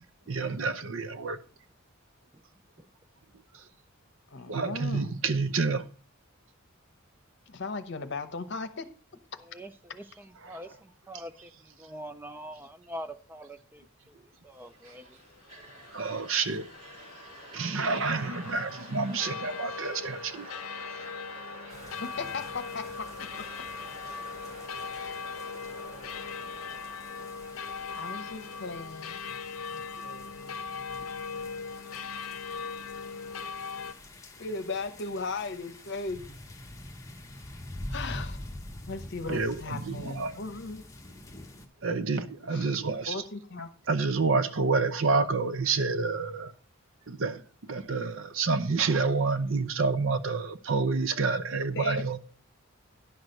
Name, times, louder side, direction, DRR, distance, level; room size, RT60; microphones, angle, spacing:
voice 1, 0.3-1.4 4.5-5.9 15.9-16.6 17.5-20.5 39.3-40.3 41.8-43.2 43.9-46.5 47.1-47.4 47.7-52.2, right 4 dB, 65° right, 0.7 m, -28 dB
voice 2, 4.3-5.1 7.5-8.9 18.3-18.6 22.0-23.4 24.9-25.1 27.9-29.2 29.7-30.6 34.4-36.4 37.9-38.4 38.9-40.8 42.5-42.8 43.1-43.7 51.7-52.0, left 3 dB, 55° left, 0.9 m, -37 dB
voice 3, 9.4-15.2, equal, 10° right, 0.4 m, -44 dB
sound 1, 14.5-28.8, right 1 dB, 35° right, 3.3 m, -48 dB
sound 2, 15.4-33.9, left 5 dB, 85° left, 0.6 m, -40 dB
sound 3, 21.7-41.7, left 1 dB, 15° left, 1.0 m, -46 dB
10.5 x 6.3 x 5.3 m
head